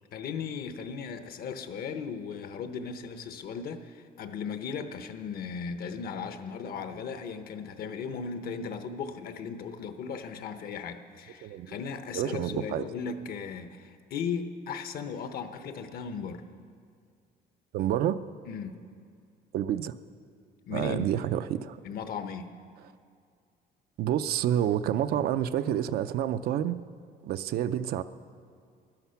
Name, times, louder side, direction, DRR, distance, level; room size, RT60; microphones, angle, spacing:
voice 1, 0.1-16.4 18.5-18.9 20.7-21.1 21.8-22.6, left 6 dB, 60° left, 9 dB, 0.9 m, -37 dB
voice 2, 12.1-12.8 17.7-18.2 19.5-19.9 20.7-21.8 24.0-26.8 27.2-28.0, right 11 dB, 65° right, 12 dB, 0.5 m, -28 dB
11.5 x 11.5 x 5.7 m, 2.2 s
cardioid pair, 110°, 17 cm